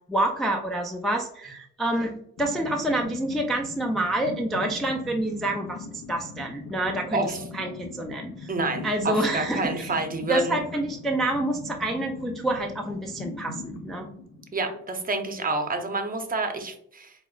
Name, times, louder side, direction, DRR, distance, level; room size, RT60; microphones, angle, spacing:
voice 1, 0.1-8.5 8.8-9.9 10.3-14.1, right 1 dB, ahead, 0 dB, 0.3 m, -28 dB
sound 1, 2.4-15.0, left 4 dB, 80° left, 0.7 m, -40 dB
voice 2, 8.5-10.6 14.5-17.1, right 2 dB, 30° right, 5 dB, 0.6 m, -28 dB
4.8 x 2.0 x 2.3 m, 0.70 s
cardioid pair, 90°, 30 cm